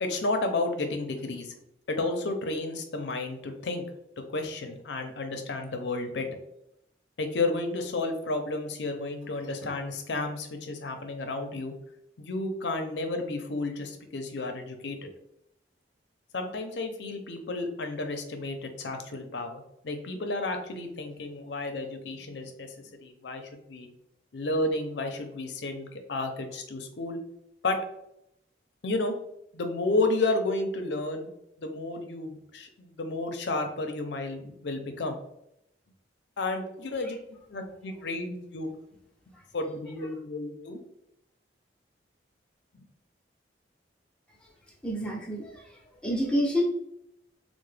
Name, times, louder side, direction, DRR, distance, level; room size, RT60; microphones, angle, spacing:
voice 1, 0.0-1.5 1.9-3.8 4.3-6.3 7.2-11.7 12.2-15.1 16.3-22.7 23.0-23.9 24.3-27.2 27.6-27.8 28.8-29.1 29.5-31.3 31.6-35.2 36.4-37.2 37.5-38.7 39.5-40.8 42.7-42.8, left 2 dB, 70° left, 6 dB, 0.5 m, -32 dB
voice 2, 44.8-45.5 46.0-46.6, equal, 5° left, -3 dB, 0.6 m, -27 dB
3.7 x 2.1 x 3.2 m, 0.79 s
head